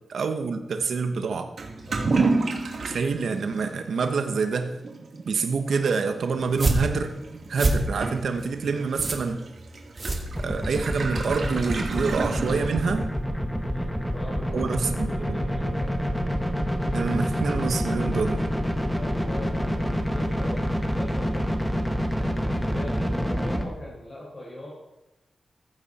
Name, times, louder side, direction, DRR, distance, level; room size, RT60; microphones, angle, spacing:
voice 1, 0.1-1.5 2.8-4.8 5.2-7.1 7.5-9.4 10.4-13.1 14.5-15.4 16.9-18.4, right 5 dB, 80° right, 6 dB, 1.2 m, -27 dB
Toilet flush / Liquid, 1.6-13.2, right 3 dB, 65° right, 2.5 m, -32 dB
voice 2, 1.9-2.2 13.6-14.8 15.1-15.9 18.9-21.5 22.1-24.7, left 1 dB, 35° left, -6 dB, 5.6 m, -40 dB
sound 1, 6.4-10.9, right 2 dB, 35° right, 2.3 m, -28 dB
sound 2, 10.4-23.6, equal, 5° left, 1.7 m, -27 dB
15.0 x 15.0 x 4.3 m, 0.95 s
wide cardioid pair, 110°, 0 cm